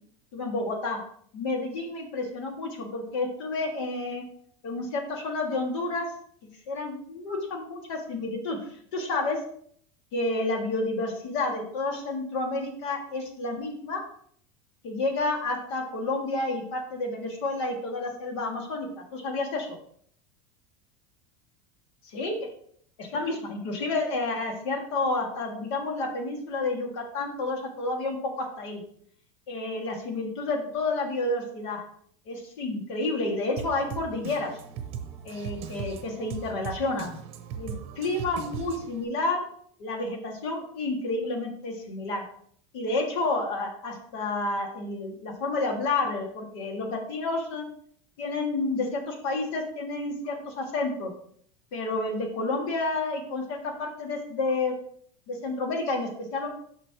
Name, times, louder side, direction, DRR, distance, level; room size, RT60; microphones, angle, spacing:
voice 1, 0.3-1.0 1.3-4.2 4.6-6.1 6.7-8.6 8.9-9.4 10.1-14.0 14.8-19.8 22.1-22.5 23.0-28.8 29.5-31.8 32.3-34.6 35.2-37.2 37.6-39.4 39.8-42.2 42.7-47.7 48.2-51.1 51.7-54.7 55.3-56.5, left 2 dB, 70° left, 2 dB, 2.0 m, -30 dB
Drum kit, 33.6-39.0, right 8 dB, 40° right, 0.8 m, -39 dB
9.4 x 5.9 x 2.9 m, 0.62 s
supercardioid pair, 165°, 15 cm